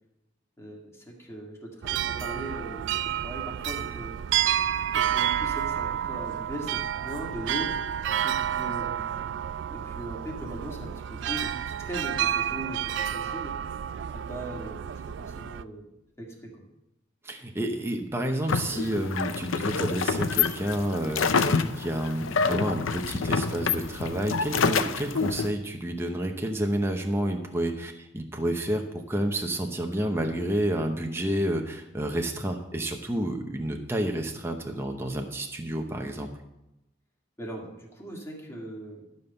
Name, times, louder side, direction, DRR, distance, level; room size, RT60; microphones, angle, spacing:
voice 1, 0.6-4.1 4.9-7.7 8.2-9.3 9.7-13.5 14.3-14.9 15.2-15.9 16.2-16.6 37.4-39.0, right 1 dB, 15° left, -1 dB, 1.9 m, -39 dB
sound 1, 1.8-15.6, right 10 dB, 65° right, 0.3 m, -30 dB
voice 2, 17.2-36.3, right 1 dB, 10° right, 3 dB, 0.8 m, -30 dB
sound 2, 18.5-25.5, left 5 dB, 85° left, 0.6 m, -27 dB
12.0 x 5.4 x 6.8 m, 0.90 s
head